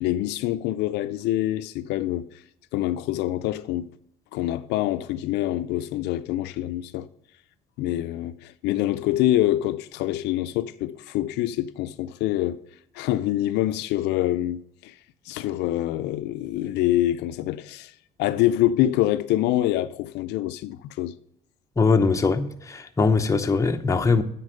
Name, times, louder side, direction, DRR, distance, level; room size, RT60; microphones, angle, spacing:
voice 1, 0.0-2.3 2.7-3.9 4.3-7.1 7.8-12.6 12.9-14.9 15.3-17.9 18.2-21.1, left 14 dB, 90° left, 0.5 m, -25 dB
voice 2, 21.8-24.2, left 4 dB, 20° left, 0.8 m, -21 dB
9.6 x 4.6 x 6.5 m
cardioid pair, 110°, 17 cm